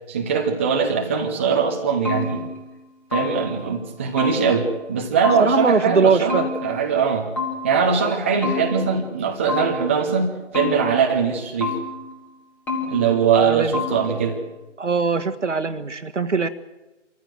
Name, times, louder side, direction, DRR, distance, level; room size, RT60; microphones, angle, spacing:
voice 1, 0.1-2.5 3.1-7.3 7.6-11.8 12.9-14.4, right 6 dB, 10° right, 2 dB, 0.8 m, -21 dB
sound 1, 1.5-3.7 4.2-5.8 6.3-8.0 8.4-10.1 10.5-12.2 12.7-13.5 13.7-14.3, left 4 dB, 5° left, 1.4 m, -30 dB
voice 2, 5.4-6.5 13.4-13.8 14.8-16.5, right 4 dB, 75° right, 11 dB, 1.6 m, -21 dB
26.0 x 14.5 x 7.8 m, 1.1 s
figure-of-eight pair, 155°, 36 cm